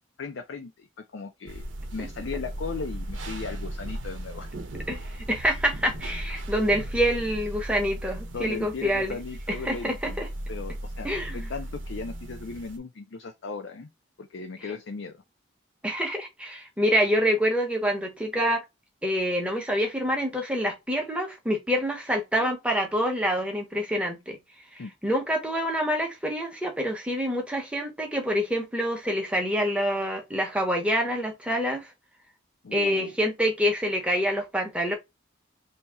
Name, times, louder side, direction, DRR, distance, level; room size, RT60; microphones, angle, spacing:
voice 1, 0.2-1.6 1.9-4.5 8.3-13.9 14.2-15.2 24.8-24.9 32.6-33.1, left 4 dB, 65° left, 0.5 m, -37 dB
sound 1, 1.5-12.8, right 1 dB, 75° right, 0.8 m, -37 dB
voice 2, 5.3-9.2 9.5-10.3 11.0-11.5 15.8-18.6 19.0-24.4 25.0-31.9 32.7-35.0, equal, 5° right, 0.8 m, -26 dB
2.8 x 2.8 x 3.4 m
head